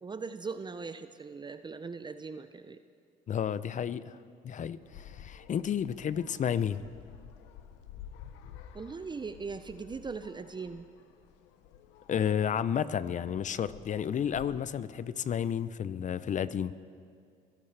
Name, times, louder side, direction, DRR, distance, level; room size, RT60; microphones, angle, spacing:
voice 1, 0.0-2.8 8.7-10.9, right 4 dB, 25° right, 11 dB, 0.6 m, -40 dB
voice 2, 3.3-4.2 4.4-6.8 12.1-16.7, left 8 dB, 40° left, 16 dB, 0.6 m, -31 dB
sound 1, 4.8-14.5, left 9 dB, 85° left, 0.8 m, -52 dB
23.0 x 14.5 x 3.4 m, 2.3 s
supercardioid pair, 75°, 19 cm